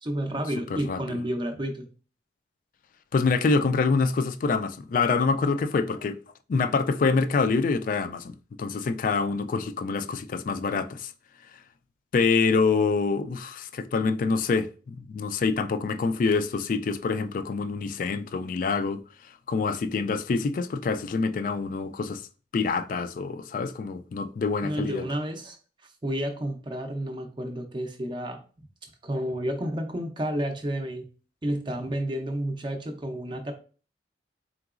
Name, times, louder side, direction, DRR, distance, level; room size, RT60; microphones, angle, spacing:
voice 1, 0.0-1.9 24.6-25.6 26.0-28.4 29.0-31.1 31.4-33.5, right 1 dB, 25° right, 0.5 m, -30 dB
voice 2, 3.1-6.2 6.5-11.1 12.1-19.0 19.5-22.2 22.5-25.1, left 4 dB, 50° left, 0.3 m, -26 dB
3.8 x 3.8 x 2.4 m
head